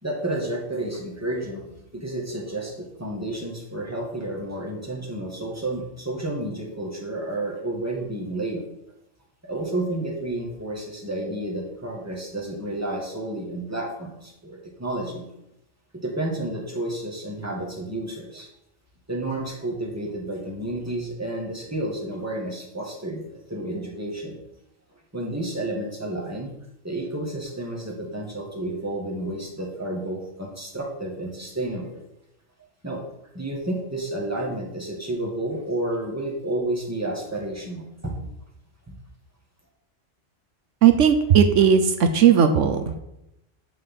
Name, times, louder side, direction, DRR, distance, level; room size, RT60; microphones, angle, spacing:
voice 1, 0.0-1.7 1.9-8.6 9.4-15.3 15.9-18.5 19.1-24.4 25.1-26.5 26.8-31.9 32.8-33.0 33.3-38.2, right 1 dB, 10° right, -1 dB, 2.2 m, -31 dB
voice 2, 40.8-43.0, right 8 dB, 80° right, 7 dB, 1.1 m, -17 dB
11.0 x 4.4 x 7.5 m, 0.86 s
omnidirectional pair, 1.3 m